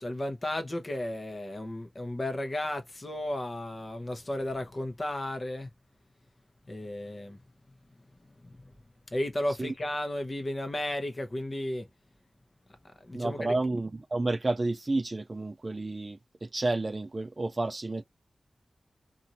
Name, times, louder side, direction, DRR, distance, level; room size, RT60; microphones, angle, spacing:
voice 1, 0.0-5.7 6.7-7.4 8.4-8.7 9.1-11.9 13.0-13.6, left 1 dB, 30° left, 0.8 m, -34 dB
voice 2, 13.1-18.0, right 2 dB, 30° right, 0.3 m, -31 dB
2.7 x 2.6 x 2.8 m
wide cardioid pair, 120°, 0 cm